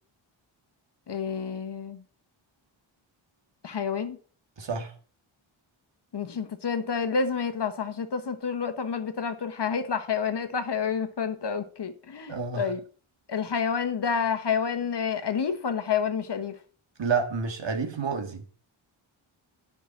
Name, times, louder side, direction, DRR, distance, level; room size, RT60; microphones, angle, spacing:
voice 1, 1.1-2.0 3.6-4.2 6.1-12.8 13.3-16.6, left 6 dB, 55° left, 1.2 m, -29 dB
voice 2, 4.6-4.9 12.3-12.7 17.0-18.4, right 5 dB, 60° right, 1.9 m, -29 dB
10.0 x 5.9 x 5.9 m
wide cardioid pair, 95°, 50 cm